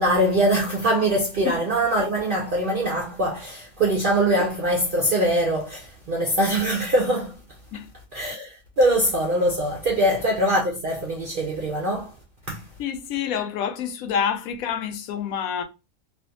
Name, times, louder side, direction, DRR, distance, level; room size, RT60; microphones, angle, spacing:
voice 1, 0.0-7.4 8.1-12.1 12.5-12.7, right 1 dB, 65° right, 0.5 m, -23 dB
voice 2, 12.8-15.6, left 8 dB, 80° left, 1.0 m, -27 dB
2.5 x 2.3 x 2.6 m
omnidirectional pair, 1.5 m